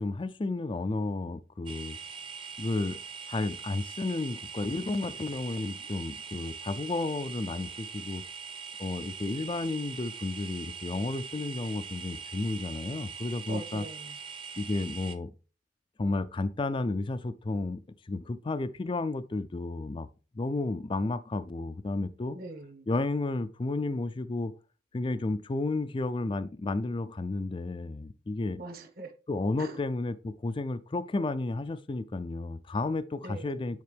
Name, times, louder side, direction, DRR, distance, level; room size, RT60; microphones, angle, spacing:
voice 1, 0.0-2.0 2.6-3.0 3.3-8.2 8.8-13.8 14.6-15.3 16.0-17.8 18.1-20.1 20.4-22.4 22.9-24.5 24.9-28.6 29.3-33.8, left 2 dB, 30° left, 0.4 m, -32 dB
sound 1, 1.7-15.2, right 6 dB, 30° right, 0.9 m, -42 dB
voice 2, 13.5-14.1 22.3-22.9 28.6-29.1 29.6-29.8 33.2-33.6, right 2 dB, 55° right, 1.6 m, -42 dB
9.4 x 4.4 x 3.4 m
head